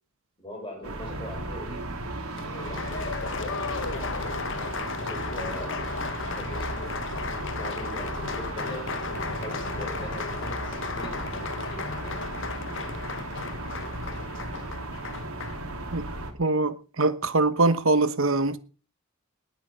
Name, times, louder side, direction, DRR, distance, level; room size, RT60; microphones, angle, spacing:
voice 1, 0.4-1.9 2.5-5.8 6.2-7.0 7.5-11.9, left 1 dB, 25° left, 6.9 m, -42 dB
sound 1, 0.8-16.3, right 1 dB, 90° right, 3.1 m, -35 dB
Applause, 2.4-15.6, left 5 dB, 60° left, 1.0 m, -35 dB
voice 2, 16.4-18.6, right 3 dB, 65° right, 1.1 m, -23 dB
19.5 x 9.0 x 5.7 m
head